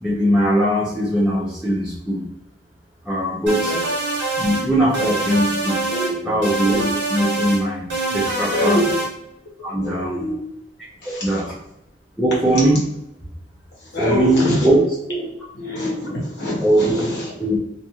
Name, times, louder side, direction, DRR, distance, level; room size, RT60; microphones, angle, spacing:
voice 1, 0.0-2.2 3.0-3.7 4.4-5.8 6.2-6.8 7.1-8.8 9.6-10.3 11.1-11.4 12.2-12.8 14.0-14.8 16.6-17.1 17.4-17.6, right 1 dB, 5° right, -10 dB, 0.5 m, -20 dB
sound 1, 3.5-4.7 4.9-6.1 6.4-7.6 7.9-9.1, right 2 dB, 80° right, 0.9 m, -24 dB
voice 2, 8.5-8.9 9.7-10.4 11.0-11.4 13.9-14.7 15.1-15.2 15.5-17.3, left 1 dB, 60° left, -5 dB, 1.1 m, -24 dB
2.5 x 2.4 x 2.9 m, 0.84 s
head